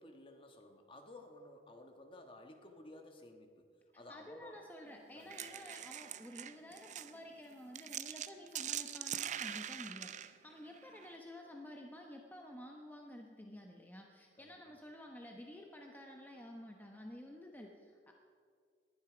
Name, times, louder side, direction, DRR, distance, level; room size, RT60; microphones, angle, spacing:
voice 1, 0.0-3.7 3.9-4.6 5.1-5.6 14.3-14.6, left 1 dB, 30° left, 4 dB, 1.5 m, -55 dB
voice 2, 3.9-18.1, left 1 dB, 10° left, 1 dB, 1.0 m, -51 dB
sound 1, 5.1-11.2, right 10 dB, 45° right, 0.5 m, -43 dB
19.5 x 11.0 x 5.1 m, 2.1 s
head